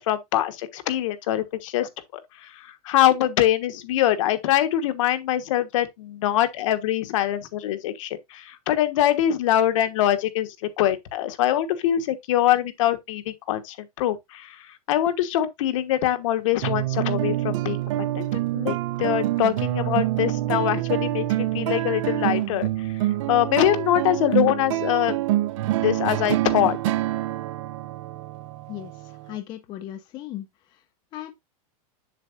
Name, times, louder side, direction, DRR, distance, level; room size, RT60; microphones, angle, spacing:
voice 1, 0.0-25.2 25.7-26.8, left 12 dB, 60° left, 1.3 m, -24 dB
sound 1, 16.6-29.4, right 15 dB, 55° right, 0.7 m, -26 dB
voice 2, 28.7-30.5 31.1-31.3, left 13 dB, 25° left, 0.7 m, -37 dB
7.5 x 6.8 x 2.6 m
supercardioid pair, 165°, 19 cm